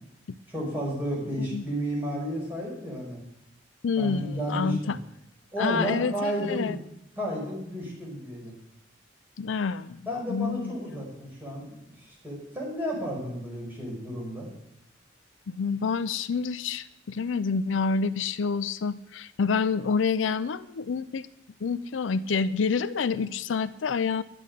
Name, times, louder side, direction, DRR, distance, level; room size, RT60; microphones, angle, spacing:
voice 1, 0.5-3.2 4.0-4.9 5.5-6.8 7.2-8.5 10.1-14.5, equal, 10° right, -3 dB, 5.6 m, -32 dB
voice 2, 3.8-5.0 5.6-6.8 9.4-10.0 10.3-10.7 15.5-21.3 21.6-24.2, left 5 dB, 75° left, 14 dB, 0.5 m, -28 dB
10.5 x 8.5 x 9.1 m, 0.82 s
head